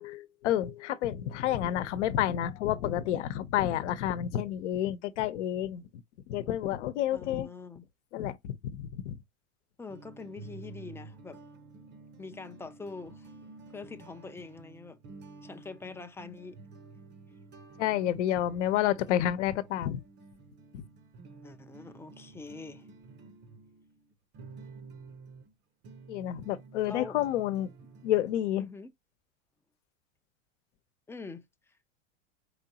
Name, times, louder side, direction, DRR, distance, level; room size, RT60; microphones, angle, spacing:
voice 1, 0.0-5.8 6.3-7.5 8.1-9.1 17.8-20.0 20.7-20.8 26.1-27.7 28.0-28.6, left 12 dB, 70° left, 0.9 m, -30 dB
voice 2, 7.1-7.8 9.8-11.4 12.2-13.3 13.7-15.0 15.4-16.6 21.4-22.9 26.9-27.2 28.6-28.9 31.1-31.4, left 4 dB, 5° left, 0.5 m, -44 dB
sound 1, 9.9-25.5 25.8-28.3, right 4 dB, 30° right, 0.8 m, -51 dB
4.8 x 3.7 x 2.9 m
hypercardioid pair, 110°, 37 cm